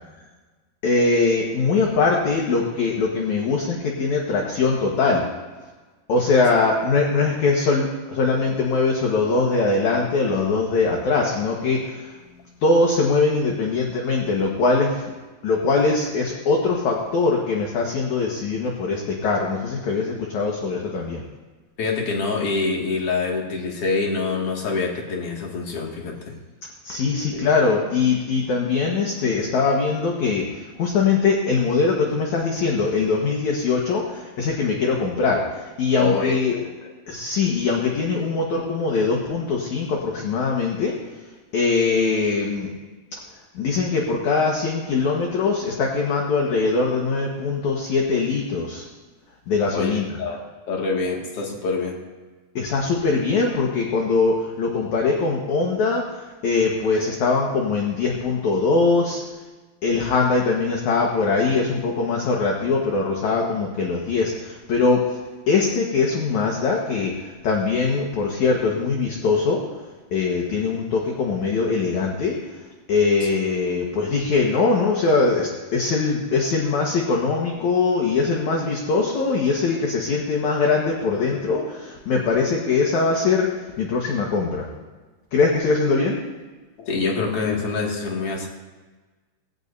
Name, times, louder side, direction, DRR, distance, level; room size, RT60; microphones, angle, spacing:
voice 1, 0.8-5.2 6.1-12.1 12.6-15.0 15.4-21.2 26.8-36.5 37.1-40.9 41.5-42.7 43.1-43.2 43.5-48.8 49.5-50.2 52.6-59.2 59.8-65.2 65.5-69.6 70.1-72.4 72.9-84.7 85.3-86.2, left 4 dB, 60° left, -1 dB, 2.4 m, -22 dB
voice 2, 21.8-26.4 27.3-27.4 36.0-36.7 49.7-50.4 50.7-52.0 73.2-73.3 86.9-88.5, left 4 dB, 40° left, -1 dB, 2.7 m, -25 dB
20.0 x 17.0 x 2.7 m, 1.3 s
omnidirectional pair, 4.7 m